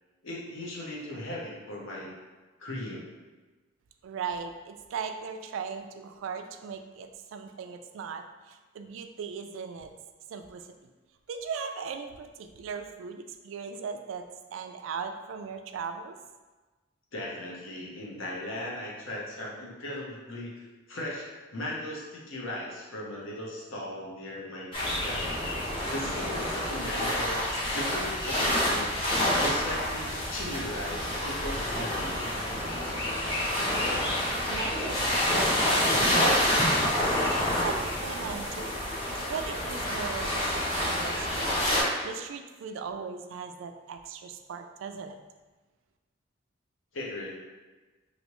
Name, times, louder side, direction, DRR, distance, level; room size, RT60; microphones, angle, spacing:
voice 1, 0.2-2.1 2.6-3.0 17.1-25.3 25.9-27.4 27.7-32.3 46.9-47.3, left 1 dB, 80° left, -4 dB, 0.8 m, -38 dB
voice 2, 4.0-9.9 10.3-10.9 11.3-16.2 34.0-36.8 37.1-38.8 39.3-45.2, right 6 dB, 75° right, 7 dB, 0.3 m, -38 dB
sound 1, 24.7-41.8, left 1 dB, 30° left, 0.9 m, -28 dB
3.1 x 2.7 x 3.0 m, 1.2 s
head